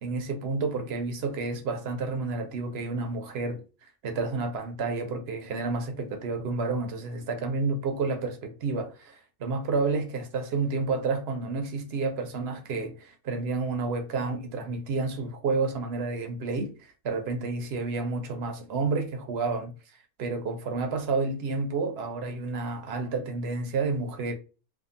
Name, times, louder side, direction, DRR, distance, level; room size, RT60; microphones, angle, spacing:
voice 1, 0.0-3.6 4.0-19.7 20.2-24.3, right 3 dB, 55° right, 0.8 m, -30 dB
2.6 x 2.5 x 2.5 m
omnidirectional pair, 1.4 m